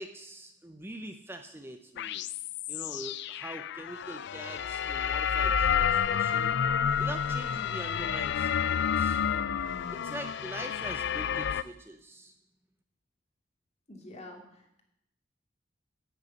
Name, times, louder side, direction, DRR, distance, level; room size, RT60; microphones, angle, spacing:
voice 1, 0.0-2.3 2.7-6.6 7.0-9.2 9.9-12.3, right 1 dB, 10° right, 6 dB, 0.6 m, -43 dB
sound 1, 2.0-11.6, left 8 dB, 65° left, 0.4 m, -30 dB
voice 2, 13.9-14.8, left 1 dB, 35° left, 1 dB, 2.3 m, -47 dB
10.0 x 6.8 x 8.8 m, 0.81 s
head